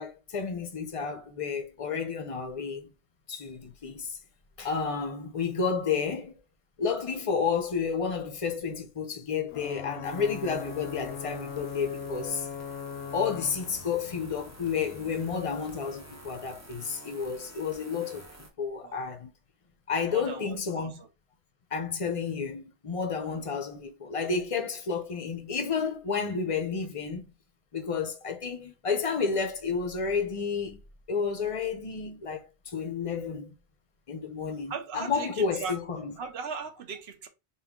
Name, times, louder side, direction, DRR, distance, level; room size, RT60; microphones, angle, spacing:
voice 1, 0.0-2.9 3.3-4.2 4.6-6.3 6.8-12.5 13.1-19.3 19.9-21.0 21.7-27.3 27.7-30.8 31.1-33.5 34.1-36.1, left 5 dB, 40° left, 0.5 m, -31 dB
Ocean / Boat Water vehicle / Alarm, 9.5-17.0, left 7 dB, 70° left, 0.8 m, -41 dB
sound 1, 10.0-18.5, right 2 dB, 20° right, 0.5 m, -50 dB
voice 2, 18.8-19.1 20.1-21.1 23.2-23.9 34.7-35.8 36.2-37.3, right 5 dB, 65° right, 0.9 m, -39 dB
3.4 x 2.3 x 3.6 m
omnidirectional pair, 1.2 m